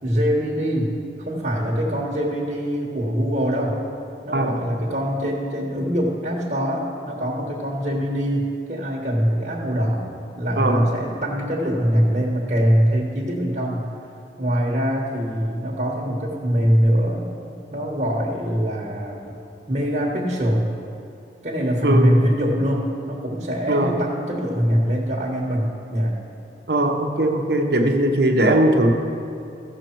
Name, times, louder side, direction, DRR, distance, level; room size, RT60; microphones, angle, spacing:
voice 1, 0.0-3.8 4.2-10.0 10.3-13.9 14.4-17.2 17.7-19.4 19.7-20.7 21.4-26.1, equal, 40° right, -3 dB, 1.3 m, -23 dB
voice 2, 21.8-22.2 23.7-23.9 26.7-28.9, right 1 dB, 65° right, 3 dB, 1.0 m, -19 dB
15.0 x 6.7 x 4.5 m, 2.7 s
head